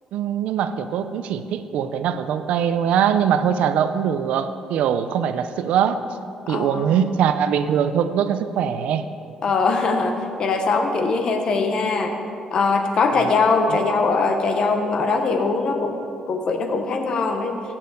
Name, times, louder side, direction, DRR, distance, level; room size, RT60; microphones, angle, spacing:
voice 1, 0.1-6.0 6.5-9.1 13.1-13.3 13.7-13.8, right 8 dB, 80° right, 11 dB, 0.5 m, -22 dB
voice 2, 6.5-6.9 9.4-12.1 12.5-16.0 16.3-17.6, left 4 dB, 40° left, 5 dB, 0.9 m, -21 dB
7.3 x 6.6 x 8.0 m, 2.5 s
cardioid pair, 175°, 2 cm